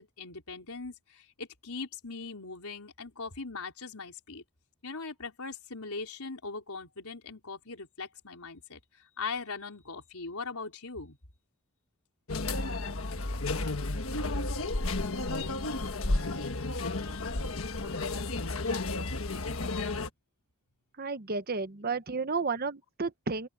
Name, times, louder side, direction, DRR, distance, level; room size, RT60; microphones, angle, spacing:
voice 1, 0.0-4.4 4.8-11.2, left 4 dB, 80° left, 4.1 m, -40 dB
sound 1, 12.3-20.1, left 2 dB, 65° left, 1.5 m, -32 dB
voice 2, 21.0-23.5, right 4 dB, 45° right, 1.0 m, -32 dB
open air
head